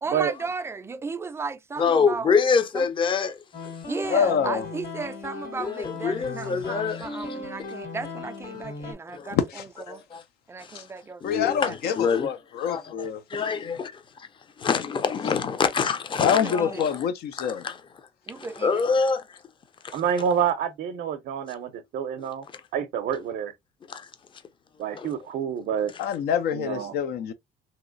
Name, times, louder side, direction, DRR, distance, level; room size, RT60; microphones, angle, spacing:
voice 1, 0.0-2.4 2.7-2.9 3.9-10.0 10.5-11.9 16.2-16.8 18.3-18.8, right 4 dB, 15° right, 0.4 m, -35 dB
voice 2, 1.8-3.4 3.6-3.7 5.6-7.0 9.1-9.3 9.9-10.2 10.7-10.8 11.2-12.3 12.7-14.0 14.6-17.0 17.4-17.8 18.6-19.2 19.8-20.0 23.9-24.1 24.9-25.1, left 5 dB, 30° left, 0.6 m, -25 dB
sound 1, 3.5-8.9, left 3 dB, 55° left, 1.8 m, -37 dB
voice 3, 4.1-4.6 9.3-9.6 10.7-10.8 11.2-13.2 16.2-17.6 26.0-27.3, left 8 dB, 70° left, 0.5 m, -26 dB
voice 4, 19.9-22.4 22.7-23.5 24.8-25.9 26.5-26.9, right 8 dB, 65° right, 0.5 m, -27 dB
3.1 x 2.8 x 2.5 m
cardioid pair, 110°, 17 cm